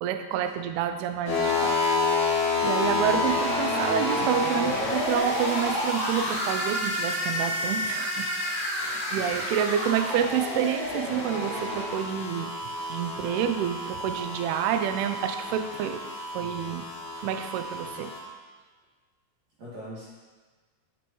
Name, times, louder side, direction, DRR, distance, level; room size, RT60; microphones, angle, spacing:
voice 1, 0.0-12.5 12.9-16.0 16.3-16.9 17.2-18.1, right 9 dB, 85° right, 7 dB, 2.2 m, -29 dB
sound 1, 1.2-18.2, left 2 dB, 50° left, 2.1 m, -29 dB
voice 2, 19.6-20.1, equal, 50° right, -10 dB, 2.5 m, -43 dB
8.6 x 6.0 x 3.1 m, 1.4 s
omnidirectional pair, 5.1 m